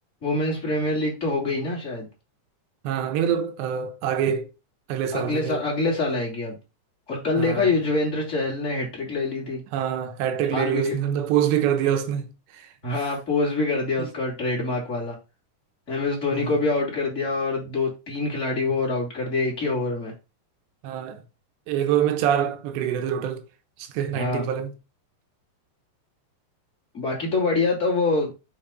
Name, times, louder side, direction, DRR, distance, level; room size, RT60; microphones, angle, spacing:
voice 1, 0.2-2.1 5.1-6.6 7.1-9.6 10.5-11.0 12.8-15.2 15.9-20.1 24.1-24.4 26.9-28.3, left 3 dB, 20° left, 2.3 m, -25 dB
voice 2, 2.8-4.5 4.9-5.6 7.4-7.7 9.7-13.1 14.0-14.1 16.3-16.5 18.6-18.8 20.8-21.2 21.7-23.4 23.8-24.7, right 9 dB, 80° right, 3.2 m, -25 dB
7.2 x 4.6 x 5.2 m
omnidirectional pair, 5.1 m